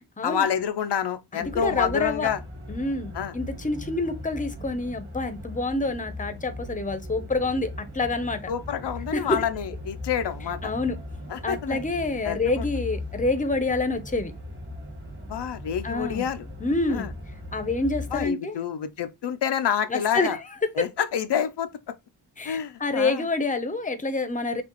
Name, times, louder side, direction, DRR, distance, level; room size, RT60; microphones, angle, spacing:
voice 1, 0.2-2.4 3.1-3.4 8.5-10.7 11.3-11.8 12.2-12.7 15.3-16.4 16.9-17.1 18.1-20.4 20.7-21.7 22.4-23.3, left 8 dB, 85° left, 0.6 m, -28 dB
voice 2, 1.3-2.3 2.7-7.7 7.9-8.4 9.1-9.4 10.6-11.0 11.4-14.3 15.8-16.3 16.6-17.1 17.5-18.6 19.9-20.4 22.4-24.6, left 3 dB, 20° left, 0.7 m, -27 dB
sound 1, 1.4-18.3, left 1 dB, 30° right, 1.8 m, -38 dB
5.8 x 2.4 x 3.0 m
wide cardioid pair, 80°, 40 cm